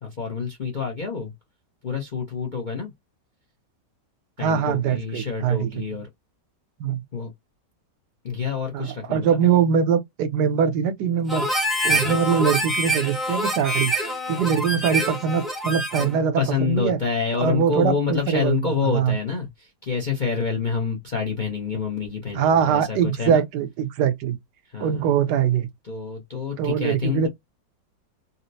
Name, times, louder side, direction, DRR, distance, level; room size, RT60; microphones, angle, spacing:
voice 1, 0.0-1.3 1.8-2.9 4.4-6.1 7.1-7.3 8.2-9.4 11.9-12.2 16.0-16.1 16.4-23.4 24.7-25.1 25.8-27.3, left 5 dB, 50° left, 0.5 m, -27 dB
voice 2, 4.4-5.7 6.8-7.0 8.7-11.5 11.8-13.9 14.3-17.0 17.4-18.6 18.9-19.1 22.3-24.4 24.8-25.7 26.6-27.3, right 7 dB, 75° right, 1.2 m, -22 dB
Harmonica, 11.3-16.2, right 1 dB, ahead, 0.4 m, -25 dB
4.1 x 2.1 x 2.6 m
omnidirectional pair, 2.0 m